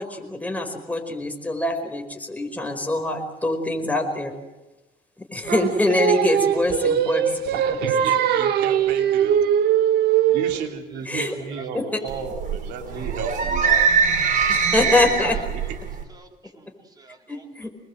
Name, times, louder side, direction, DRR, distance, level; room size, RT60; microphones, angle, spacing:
voice 1, 0.0-4.3 5.3-7.2 11.1-11.3 11.7-11.8 14.5-15.3 17.3-17.7, left 2 dB, 10° left, 3 dB, 4.8 m, -24 dB
Singing, 5.5-10.7, right 9 dB, 70° right, 1.4 m, -21 dB
voice 2, 7.5-9.6 10.3-13.9 14.3-14.5 14.9-15.8, right 5 dB, 90° right, 5 dB, 2.8 m, -34 dB
voice 3, 11.2-11.7 12.0-12.2 12.9-13.1 15.3-15.8 16.1-17.7, right 2 dB, 25° right, 3 dB, 3.9 m, -50 dB
sound 1, 12.1-16.0, right 6 dB, 50° right, 4.5 m, -22 dB
26.0 x 20.5 x 7.8 m, 1.1 s
cardioid pair, 110°, 17 cm